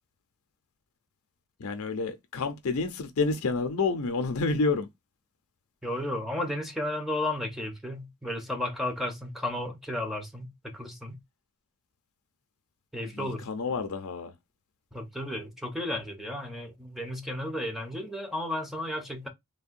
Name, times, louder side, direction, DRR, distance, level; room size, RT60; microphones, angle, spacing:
voice 1, 1.6-4.9 13.2-14.3, left 3 dB, 70° left, 0.5 m, -29 dB
voice 2, 5.8-11.2 12.9-13.4 14.9-19.3, left 1 dB, ahead, 0.6 m, -33 dB
3.4 x 2.2 x 2.5 m
head